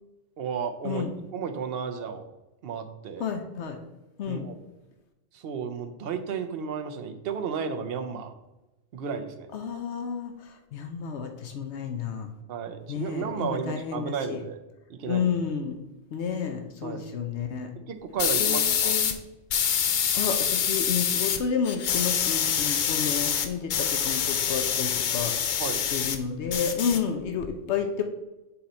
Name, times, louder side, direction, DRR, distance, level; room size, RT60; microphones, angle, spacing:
voice 1, 0.4-1.0 1.3-2.3 2.6-3.2 4.3-4.6 5.3-8.3 8.9-9.5 12.5-14.6 14.9-15.3 16.8-17.0 17.9-19.0 25.6-25.8, right 6 dB, 60° right, 7 dB, 0.8 m, -33 dB
voice 2, 3.2-3.8 4.2-4.4 9.5-12.3 12.9-14.4 15.1-15.8 16.1-17.7 18.4-19.2 20.1-25.3 25.9-28.0, left 6 dB, 75° left, 5 dB, 0.9 m, -31 dB
sound 1, 18.2-19.2 19.5-21.4 21.7-26.2 26.5-27.5, left 8 dB, 60° left, 0.5 m, -26 dB
6.8 x 3.9 x 4.2 m, 1.0 s
omnidirectional pair, 1.2 m